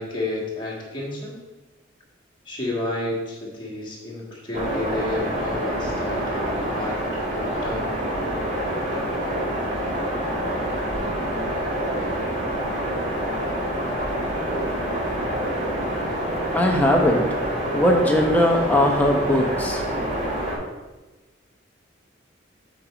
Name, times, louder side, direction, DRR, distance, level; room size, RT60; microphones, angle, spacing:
voice 1, 0.0-1.4 2.5-7.9, left 2 dB, 25° left, -4 dB, 1.8 m, -31 dB
sound 1, 4.5-20.6, right 1 dB, 40° right, 2.3 m, -27 dB
voice 2, 16.5-17.4 17.7-19.8, left 1 dB, 10° left, 0 dB, 0.9 m, -20 dB
7.7 x 5.1 x 4.3 m, 1.2 s
head